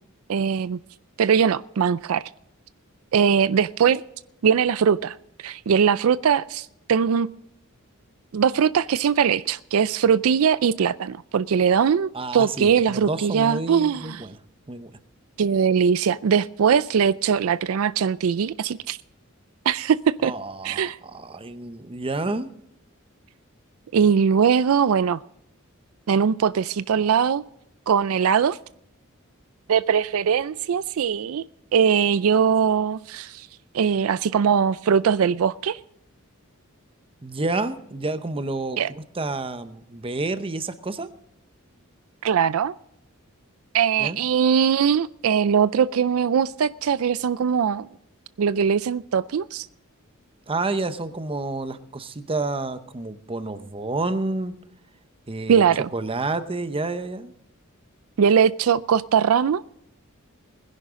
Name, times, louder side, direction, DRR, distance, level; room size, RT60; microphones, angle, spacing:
voice 1, 0.3-0.8 1.2-2.2 3.1-4.0 4.4-7.3 8.3-14.2 15.4-19.0 19.7-20.3 20.6-21.0 23.9-25.2 26.1-27.4 27.9-28.6 29.7-31.4 31.7-33.5 33.7-35.8 38.8-38.9 42.2-42.7 43.7-47.9 48.4-49.7 55.5-55.9 58.2-59.6, right 7 dB, 75° right, 16 dB, 0.4 m, -21 dB
voice 2, 12.1-14.4 14.7-14.9 20.2-22.5 37.2-41.1 44.0-44.2 50.5-54.5 55.3-55.6 55.9-57.3, right 2 dB, 25° right, 11 dB, 0.8 m, -29 dB
20.5 x 10.5 x 3.7 m, 0.79 s
head